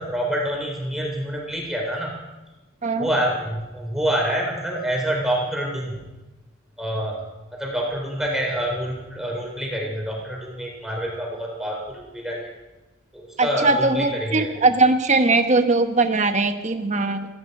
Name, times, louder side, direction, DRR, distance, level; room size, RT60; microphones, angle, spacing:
voice 1, 0.0-2.2 3.0-6.0 6.8-7.2 7.6-12.5 13.1-14.5, equal, ahead, -1 dB, 3.7 m, -27 dB
voice 2, 13.4-17.3, right 3 dB, 35° right, 7 dB, 1.2 m, -20 dB
17.5 x 14.5 x 5.4 m, 1.1 s
head